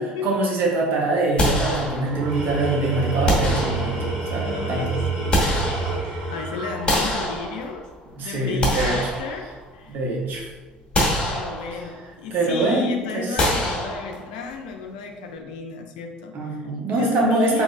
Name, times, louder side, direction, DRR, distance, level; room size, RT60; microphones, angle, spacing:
voice 1, 0.2-5.0 8.2-9.0 9.9-10.5 12.3-13.4 16.3-17.6, right 2 dB, 45° right, -2 dB, 1.2 m, -24 dB
sound 1, 1.4-2.4 3.3-4.3 5.0-6.3 6.9-8.0 8.4-9.9 10.3-10.4 10.9-12.0 13.4-14.5, left 1 dB, 20° left, 1.3 m, -25 dB
Tools, 2.0-7.4, right 3 dB, 65° right, 1.3 m, -29 dB
voice 2, 4.2-5.8 6.3-7.9 8.2-10.0 11.2-16.6 16.9-17.6, left 5 dB, 65° left, 4 dB, 0.5 m, -33 dB
5.0 x 3.7 x 2.4 m, 1.2 s
figure-of-eight pair, 60°, 5 cm